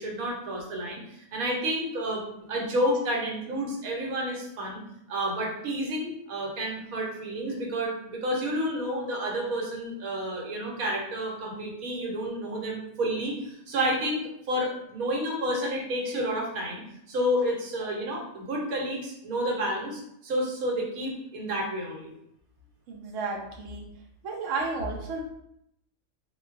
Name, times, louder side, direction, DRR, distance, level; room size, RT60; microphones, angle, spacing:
voice 1, 0.0-4.8 5.1-14.2 14.5-16.8 17.1-22.1, equal, 85° right, -1 dB, 1.2 m, -30 dB
voice 2, 22.9-23.9 24.2-25.2, right 3 dB, 70° right, -1 dB, 0.9 m, -32 dB
3.7 x 2.2 x 2.4 m, 0.75 s
omnidirectional pair, 1.5 m